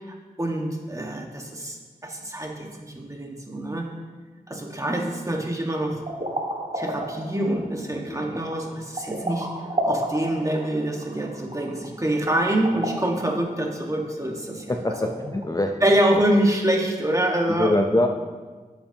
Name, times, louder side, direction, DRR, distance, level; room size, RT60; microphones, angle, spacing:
voice 1, 0.0-1.8 2.0-3.9 4.5-6.0 6.7-9.5 9.8-14.7 15.0-15.1 15.8-17.7, right 1 dB, 20° right, 0 dB, 1.6 m, -25 dB
sound 1, 5.9-15.4, right 1 dB, 45° right, 1.9 m, -32 dB
voice 2, 15.0-15.8 17.5-18.1, left 1 dB, 25° left, 3 dB, 0.6 m, -23 dB
10.5 x 7.2 x 2.9 m, 1.4 s
cardioid pair, 40°, 15 cm